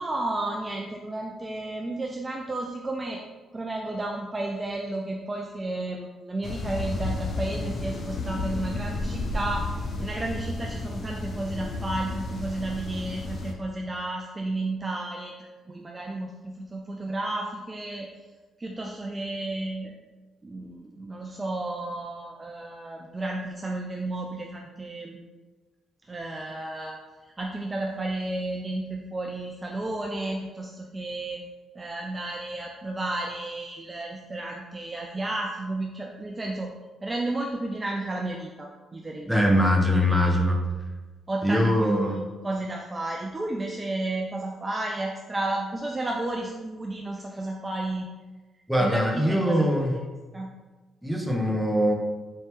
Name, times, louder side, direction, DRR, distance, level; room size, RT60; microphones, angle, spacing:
voice 1, 0.0-3.2 3.5-18.1 18.6-19.9 20.4-25.2 26.1-27.0 27.4-31.5 31.8-36.7 37.0-39.6 39.9-40.4 41.3-48.1 48.8-49.7 50.3-50.5, right 2 dB, 25° right, 0 dB, 0.4 m, -32 dB
sound 1, 6.4-13.5, left 2 dB, 45° left, 0.6 m, -32 dB
voice 2, 39.3-40.6 41.4-42.2 48.7-49.9 51.0-51.9, equal, ahead, 0 dB, 0.8 m, -22 dB
4.3 x 2.8 x 3.4 m, 1.3 s
cardioid pair, 90°, 0 cm